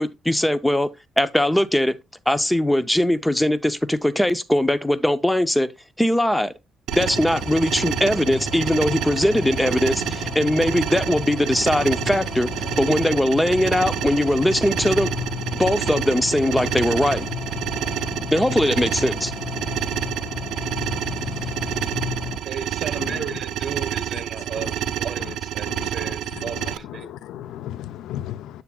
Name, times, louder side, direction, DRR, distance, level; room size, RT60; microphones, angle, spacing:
voice 1, 0.0-2.0 2.3-5.7 6.0-6.5 6.9-12.5 12.8-15.1 15.5-17.3 18.3-19.3, left 1 dB, 5° left, 0.6 m, -20 dB
sound 1, 6.9-22.4, left 6 dB, 70° left, 2.0 m, -33 dB
sound 2, 6.9-26.8, right 11 dB, 85° right, 0.5 m, -28 dB
voice 2, 22.4-27.1, right 7 dB, 55° right, 1.3 m, -34 dB
voice 3, 23.0-23.4 24.6-24.7 25.2-25.3 25.7-28.6, left 12 dB, 85° left, 0.4 m, -36 dB
8.4 x 7.0 x 2.3 m
cardioid pair, 90°, 0 cm